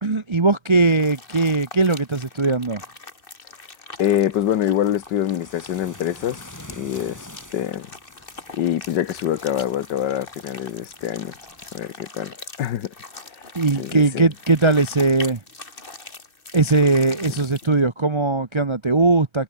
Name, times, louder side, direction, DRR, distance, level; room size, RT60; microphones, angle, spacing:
voice 1, 0.0-2.8 13.5-15.4 16.5-19.4, right 3 dB, 35° right, 0.4 m, -19 dB
sound 1, 0.9-17.8, left 3 dB, 30° left, 2.7 m, -42 dB
voice 2, 4.0-6.4 6.8-7.3 7.5-7.9 8.5-11.3 11.7-12.9 13.8-14.3, left 11 dB, 75° left, 1.6 m, -25 dB
sound 2, 4.0-11.9, left 1 dB, 10° left, 4.0 m, -47 dB
omnidirectional pair, 1.9 m